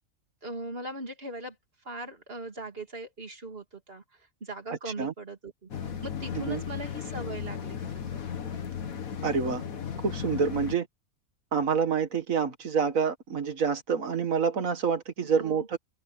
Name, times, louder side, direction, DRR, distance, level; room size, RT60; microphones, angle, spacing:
voice 1, 0.4-1.5 1.8-4.0 4.4-7.9 15.2-15.7, right 1 dB, 40° right, 3.0 m, -39 dB
voice 2, 4.7-5.1 6.4-6.6 9.2-9.6 10.0-10.9 11.5-15.8, right 6 dB, 70° right, 2.0 m, -27 dB
sound 1, 5.7-10.8, left 7 dB, 75° left, 1.9 m, -36 dB
open air
omnidirectional pair, 1.5 m